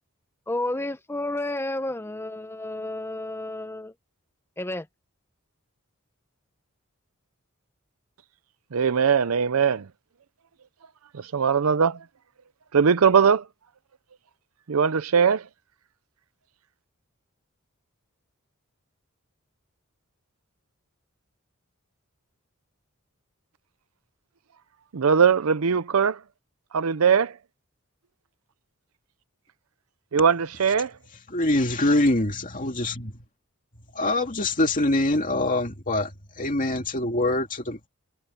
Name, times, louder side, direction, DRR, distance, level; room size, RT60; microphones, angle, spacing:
voice 1, 0.5-3.9 4.6-4.9, left 1 dB, 10° left, 0.9 m, -31 dB
voice 2, 8.7-9.9 11.1-12.0 12.7-13.5 14.7-15.5 24.9-26.2 26.7-27.4 30.1-31.0, right 6 dB, 90° right, 0.6 m, -21 dB
voice 3, 31.3-33.1 33.9-37.9, left 2 dB, 40° left, 2.4 m, -24 dB
head